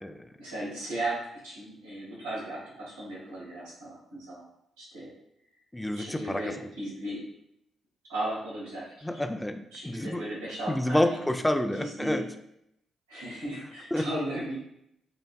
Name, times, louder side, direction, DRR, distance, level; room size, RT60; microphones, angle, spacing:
voice 1, 0.4-4.4 4.8-5.1 5.9-7.3 8.1-9.2 9.7-11.2 11.7-12.2 13.1-14.6, right 1 dB, 90° right, -7 dB, 1.5 m, -36 dB
voice 2, 5.7-6.4 9.0-10.2 10.7-12.2 13.9-14.0, left 1 dB, 10° left, 7 dB, 0.5 m, -28 dB
6.9 x 2.5 x 2.2 m, 0.77 s
hypercardioid pair, 40°, 0 cm